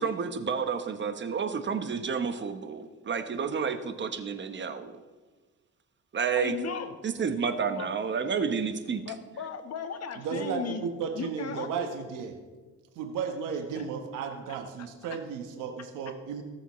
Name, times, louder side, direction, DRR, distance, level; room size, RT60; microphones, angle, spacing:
voice 1, 0.0-5.0 6.1-6.6 7.0-9.0, right 6 dB, 40° right, 8 dB, 1.0 m, -30 dB
voice 2, 6.3-6.9 7.7-7.9 9.0-10.8 11.1-11.9 13.7-13.8 14.5-14.6, left 6 dB, 55° left, 8 dB, 1.2 m, -36 dB
voice 3, 10.2-12.3 13.0-16.4, right 6 dB, 90° right, 4 dB, 1.2 m, -34 dB
18.0 x 7.0 x 3.1 m, 1.3 s
cardioid pair, 90°, 30 cm